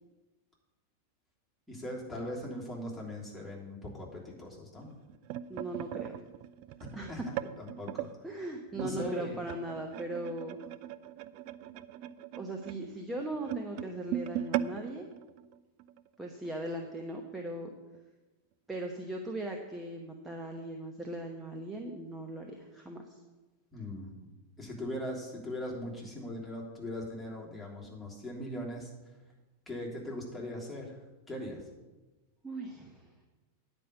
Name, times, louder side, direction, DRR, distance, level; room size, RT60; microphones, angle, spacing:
voice 1, 1.7-4.9 6.8-8.1 8.7-9.4 23.7-24.1 24.6-28.9 29.7-31.0 31.3-31.6, left 1 dB, 5° left, -5 dB, 3.3 m, -40 dB
sound 1, 4.8-8.1 8.8-16.1 16.4-16.6 16.9-17.2 17.9-18.0, right 11 dB, 45° right, 0.4 m, -39 dB
voice 2, 5.5-6.2 6.9-7.1 8.2-10.6 12.4-15.1 16.2-17.7 18.7-23.2 32.4-33.1, right 1 dB, 10° right, 2 dB, 1.1 m, -39 dB
9.8 x 5.4 x 8.2 m, 1.1 s
figure-of-eight pair, 90°, 0 cm